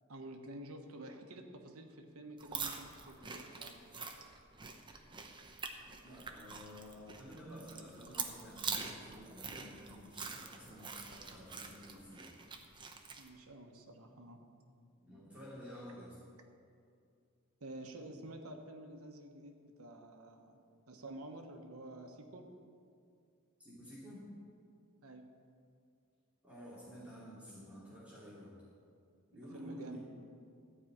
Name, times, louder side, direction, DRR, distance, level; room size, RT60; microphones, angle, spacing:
voice 1, 0.1-4.4 13.2-14.4 17.6-22.5 25.0-25.3 29.3-30.0, right 1 dB, 85° right, 4 dB, 1.2 m, -50 dB
sound 1, 2.4-13.3, right 5 dB, 20° right, 0.8 m, -45 dB
voice 2, 6.0-12.3 15.1-16.2 23.6-24.3 26.4-28.5 29.3-30.0, equal, 5° right, -10 dB, 2.7 m, -51 dB
14.0 x 4.9 x 8.7 m, 2.4 s
head